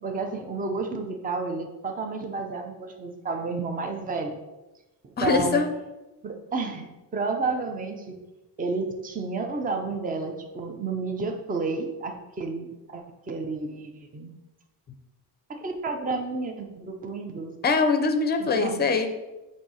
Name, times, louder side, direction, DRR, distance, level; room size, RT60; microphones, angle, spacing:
voice 1, 0.0-4.4 5.0-5.6 6.2-8.2 8.6-14.3 15.5-17.5 18.4-18.8, right 3 dB, 20° right, 4 dB, 0.6 m, -31 dB
voice 2, 5.2-5.7 17.6-19.1, left 4 dB, 25° left, 7 dB, 0.6 m, -22 dB
7.5 x 2.7 x 5.6 m, 1.0 s
cardioid pair, 165°, 41 cm